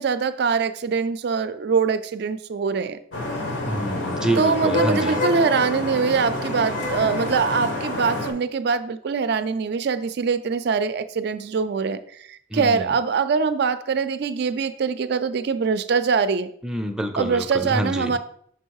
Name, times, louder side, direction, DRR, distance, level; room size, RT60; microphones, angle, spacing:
voice 1, 0.0-3.0 4.4-16.5 17.2-18.2, right 5 dB, 60° right, 11 dB, 0.4 m, -23 dB
Vehicle horn car horn honking / Traffic noise roadway noise, 3.1-8.3, left 1 dB, 85° left, 1.3 m, -27 dB
voice 2, 3.7-5.2 12.5-12.9 16.6-18.2, right 1 dB, 5° right, 4 dB, 0.5 m, -27 dB
6.0 x 3.5 x 4.7 m, 0.64 s
head